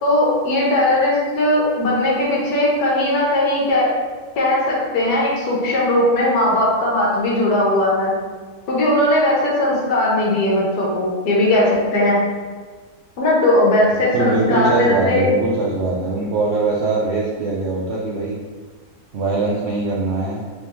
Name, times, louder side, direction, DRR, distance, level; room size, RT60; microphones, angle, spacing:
voice 1, 0.0-3.9 4.4-8.1 8.7-12.2 13.2-15.3, left 1 dB, 90° left, -4 dB, 1.4 m, -18 dB
voice 2, 14.1-18.4 19.1-20.4, right 3 dB, 65° right, -5 dB, 0.7 m, -21 dB
3.3 x 2.9 x 3.4 m, 1.5 s
omnidirectional pair, 1.6 m